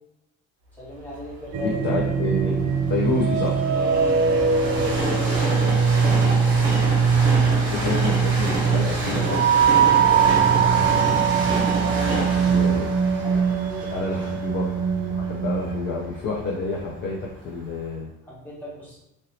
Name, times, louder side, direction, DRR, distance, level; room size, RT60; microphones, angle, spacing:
voice 1, 0.8-2.0 3.7-4.1 4.8-6.6 9.9-10.3 11.7-12.6 13.2-14.0 18.3-19.0, equal, 5° left, -7 dB, 1.0 m, -37 dB
Train, 1.2-17.1 17.7-17.8, right 1 dB, 35° right, 1.0 m, -29 dB
sound 1, 1.5-15.8, right 6 dB, 55° right, 0.4 m, -21 dB
voice 2, 1.6-2.6 2.9-3.5 7.7-9.5 9.9-11.0 12.5-12.9 13.9-14.7 15.1-18.1, left 2 dB, 35° left, -2 dB, 0.4 m, -29 dB
3.0 x 2.7 x 2.7 m, 0.86 s
cardioid pair, 145°, 31 cm